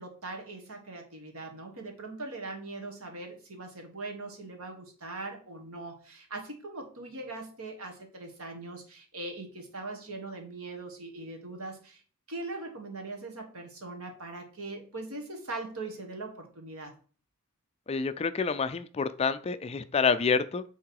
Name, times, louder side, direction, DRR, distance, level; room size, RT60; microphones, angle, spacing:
voice 1, 0.0-12.0 12.3-16.9, right 2 dB, 70° right, 3 dB, 1.8 m, -41 dB
voice 2, 17.9-20.6, left 5 dB, 25° left, 12 dB, 0.4 m, -28 dB
8.6 x 3.6 x 4.7 m, 0.40 s
head